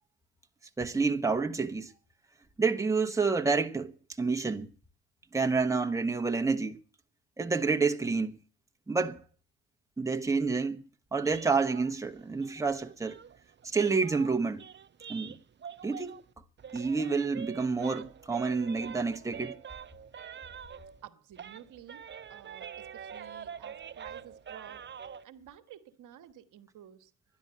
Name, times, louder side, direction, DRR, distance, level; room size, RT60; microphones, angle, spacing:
voice 1, 0.8-1.9 2.6-3.9 4.2-4.7 5.3-6.8 7.4-8.4 8.9-9.2 10.0-10.8 11.1-13.2 13.6-14.6 15.1-15.4 15.8-16.2 16.7-19.6, right 4 dB, 10° right, 1.1 m, -29 dB
sound 1, 11.2-16.3 16.6-21.1 21.4-25.2, right 7 dB, 35° right, 0.8 m, -45 dB
voice 2, 21.0-24.9 25.2-27.1, right 11 dB, 65° right, 1.4 m, -52 dB
11.5 x 11.0 x 8.7 m
supercardioid pair, 70°, 33 cm